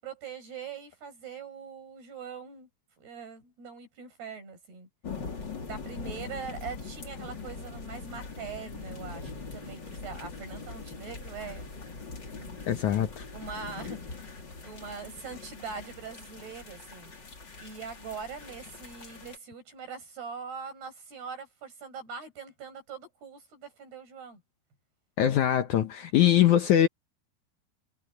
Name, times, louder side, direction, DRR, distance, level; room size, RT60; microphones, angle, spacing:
voice 1, 0.0-2.7 3.0-4.9 5.6-11.8 12.3-12.6 13.3-14.4 14.6-17.2 17.6-24.4, right 6 dB, 85° right, 10.0 m, -42 dB
sound 1, 5.0-19.4, left 4 dB, 30° left, 3.5 m, -42 dB
voice 2, 12.7-13.3 25.2-26.9, left 11 dB, 70° left, 1.9 m, -22 dB
omnidirectional pair, 4.5 m